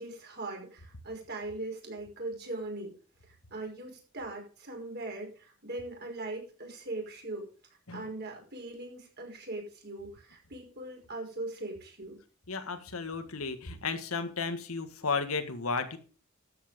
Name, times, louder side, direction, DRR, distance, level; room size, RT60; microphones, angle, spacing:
voice 1, 0.0-3.0 3.3-7.5 7.9-12.2, right 2 dB, 50° right, 1 dB, 5.6 m, -40 dB
voice 2, 12.5-16.0, left 4 dB, 90° left, 8 dB, 1.7 m, -33 dB
13.0 x 8.4 x 5.3 m, 0.38 s
head